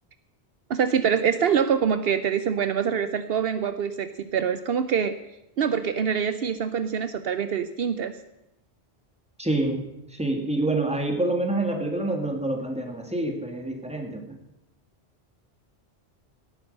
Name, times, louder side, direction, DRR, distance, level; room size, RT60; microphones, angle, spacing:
voice 1, 0.7-5.2 5.6-8.1, right 7 dB, 70° right, 11 dB, 0.8 m, -25 dB
voice 2, 9.4-14.4, right 2 dB, 5° right, 3 dB, 1.8 m, -27 dB
17.5 x 9.2 x 5.4 m, 0.89 s
omnidirectional pair, 1.1 m